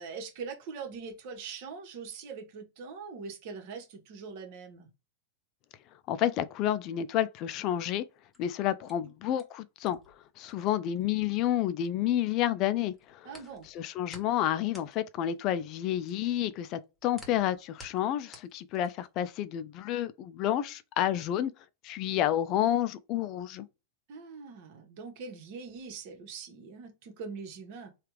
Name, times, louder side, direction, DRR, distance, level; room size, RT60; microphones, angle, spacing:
voice 1, 0.0-4.9 13.2-13.7 24.1-27.9, right 5 dB, 55° right, 1.1 m, -42 dB
voice 2, 6.1-8.0 8.4-13.3 13.6-21.5 21.8-23.7, left 11 dB, 45° left, 0.3 m, -30 dB
sound 1, 8.1-12.3 12.6-19.2, left 1 dB, 10° left, 1.1 m, -54 dB
3.4 x 2.3 x 3.0 m
hypercardioid pair, 110°, 0 cm